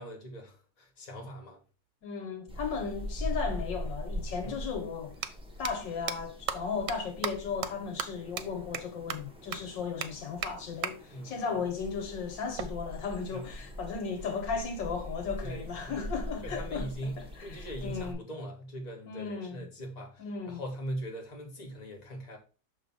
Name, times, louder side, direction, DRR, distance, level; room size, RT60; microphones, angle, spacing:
voice 1, 0.0-1.6 4.4-4.7 11.1-11.5 13.3-13.5 15.4-15.9 16.4-22.4, equal, 25° left, 1.5 m, -41 dB
voice 2, 2.0-5.2 5.6-18.2 19.1-19.6 20.2-20.6, left 5 dB, 75° left, 1.7 m, -36 dB
sound 1, 2.5-18.1, equal, 5° right, 0.8 m, -42 dB
sound 2, 3.9-4.0 5.1-5.3 5.6-5.7 6.1-6.2 6.5-6.6 6.9-7.0 7.2-7.3 7.6-7.7 8.0-8.1 8.4-8.5 8.7-8.8 9.1-9.2 9.5-9.6 10.0-10.1 10.4-10.5 10.8-10.9 12.6-13.6, right 9 dB, 75° right, 1.3 m, -34 dB
6.5 x 3.5 x 5.3 m
omnidirectional pair, 2.0 m